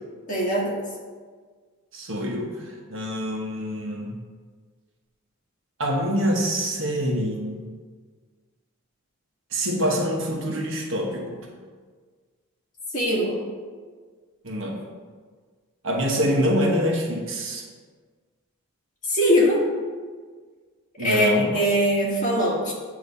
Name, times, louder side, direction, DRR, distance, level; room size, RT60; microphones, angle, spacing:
voice 1, 0.3-0.8 12.9-13.4 19.1-19.7 21.0-22.7, equal, 35° left, -5 dB, 1.6 m, -21 dB
voice 2, 1.9-4.1 5.8-7.6 9.5-11.4 14.4-14.8 15.8-17.6 21.0-21.6, equal, 60° right, 0 dB, 1.0 m, -25 dB
8.4 x 2.9 x 5.3 m, 1.5 s
head